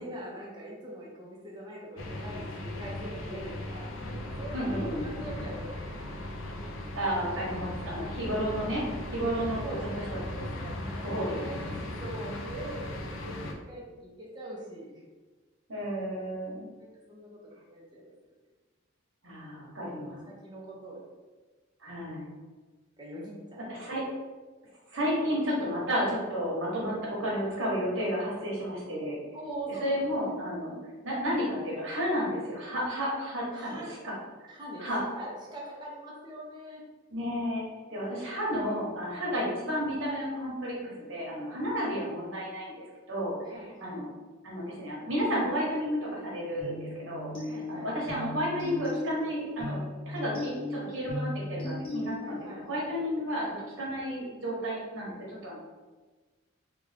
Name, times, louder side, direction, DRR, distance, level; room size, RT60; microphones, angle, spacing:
voice 1, 0.0-6.2 9.6-15.0 16.8-18.1 20.0-21.0 23.0-23.4 23.8-23.9 29.3-30.3 33.5-34.0 34.5-34.9 35.1-36.8 43.4-44.0 47.5-47.9 52.2-53.1, right 1 dB, 20° right, -4 dB, 0.8 m, -43 dB
sound 1, 2.0-13.5, left 1 dB, 75° left, 0.5 m, -38 dB
voice 2, 4.5-5.1 6.9-9.8 10.1-10.2 11.0-11.4 15.7-16.7 19.2-20.2 21.8-22.3 23.7-24.0 24.9-29.2 29.8-30.8 31.0-34.1 34.4-35.0 37.1-37.6 37.9-43.3 43.8-44.1 44.4-49.8 50.0-53.4 53.8-55.6, equal, 65° right, -4 dB, 1.1 m, -32 dB
sound 2, 46.6-52.6, left 1 dB, 25° left, 1.1 m, -37 dB
3.4 x 2.4 x 3.4 m, 1.3 s
head